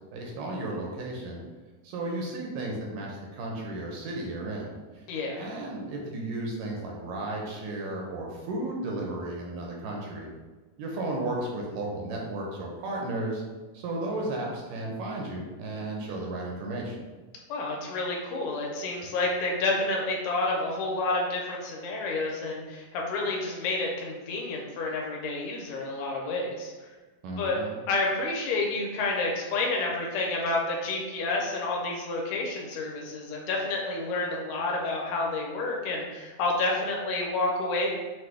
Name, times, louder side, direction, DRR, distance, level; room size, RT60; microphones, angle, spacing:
voice 1, 0.1-1.4 1.8-5.1 5.4-10.3 10.8-13.4 13.7-17.0 27.2-27.8, right 2 dB, 75° right, -1 dB, 2.1 m, -34 dB
voice 2, 5.1-5.5 17.5-26.7 27.4-27.6 27.9-37.9, left 2 dB, 80° left, -1 dB, 2.2 m, -29 dB
5.9 x 2.2 x 3.3 m, 1.3 s
omnidirectional pair, 4.1 m